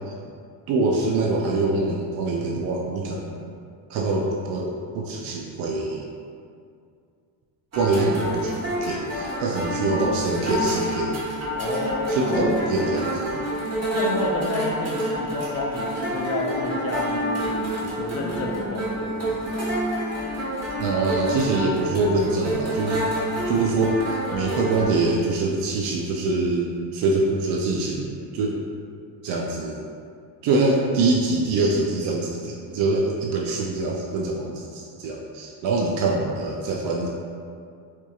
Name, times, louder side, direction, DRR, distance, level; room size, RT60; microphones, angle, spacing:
voice 1, 0.7-3.4 3.9-6.1 7.7-11.2 11.8-13.4 20.8-23.1 23.5-24.0 24.3-28.6 29.2-29.8 30.4-37.1, right 3 dB, 70° right, -1 dB, 0.6 m, -24 dB
sound 1, 7.7-24.9, equal, 35° right, 1.1 m, -28 dB
voice 2, 11.5-12.5 13.9-19.8, left 2 dB, 35° left, -1 dB, 0.5 m, -30 dB
4.4 x 2.7 x 2.3 m, 2.3 s
supercardioid pair, 85°, 47 cm